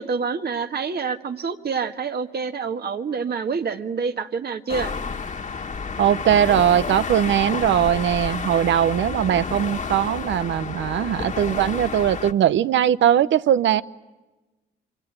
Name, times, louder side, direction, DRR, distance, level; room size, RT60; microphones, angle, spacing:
voice 1, 0.0-4.9, right 5 dB, 55° right, 6 dB, 1.9 m, -27 dB
sound 1, 4.7-12.3, left 5 dB, 40° left, 1.8 m, -30 dB
voice 2, 6.0-13.8, right 10 dB, 75° right, 15 dB, 0.8 m, -20 dB
28.0 x 25.0 x 8.2 m, 1.1 s
supercardioid pair, 65°, 20 cm